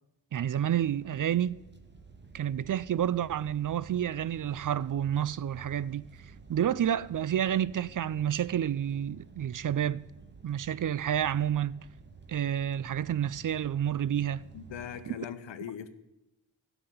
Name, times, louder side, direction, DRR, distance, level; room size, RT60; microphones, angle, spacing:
voice 1, 0.3-1.6 2.3-6.0 6.5-10.1 10.4-11.9 12.3-14.4 15.1-15.2, right 10 dB, 50° right, 0.5 m, -29 dB
sound 1, 0.7-15.0, right 5 dB, 25° right, 1.3 m, -52 dB
voice 2, 14.5-15.9, left 9 dB, 85° left, 0.9 m, -40 dB
12.5 x 6.1 x 9.2 m
cardioid pair, 45°, 43 cm